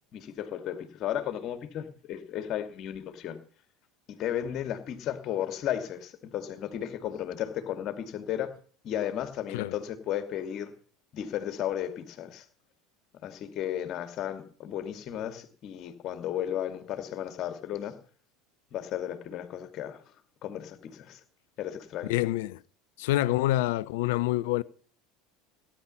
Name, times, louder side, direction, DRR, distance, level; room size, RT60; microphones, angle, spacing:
voice 1, 0.1-3.4 4.1-8.5 8.8-10.7 11.1-12.4 13.2-17.9 18.7-20.0 20.4-21.2 21.6-22.1, left 10 dB, 45° left, 2.5 m, -34 dB
voice 2, 22.1-22.6 23.0-24.6, left 16 dB, 65° left, 0.7 m, -26 dB
17.0 x 10.5 x 5.7 m
figure-of-eight pair, 75°, 0 cm